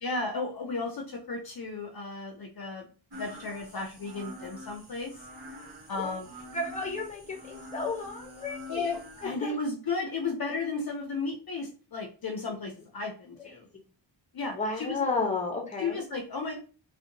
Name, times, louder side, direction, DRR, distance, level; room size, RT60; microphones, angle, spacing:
voice 1, 0.0-2.9 3.1-5.3 5.9-6.3 8.7-13.7 14.3-15.0 15.8-16.6, left 3 dB, 50° left, 2 dB, 0.5 m, -34 dB
sound 1, 3.1-9.3, left 1 dB, 55° right, 1.0 m, -46 dB
voice 2, 6.5-8.9 9.2-9.5 13.4-13.5 14.5-16.0, left 3 dB, 15° left, 2 dB, 0.7 m, -32 dB
2.7 x 2.1 x 2.6 m, 0.37 s
wide cardioid pair, 75°, 47 cm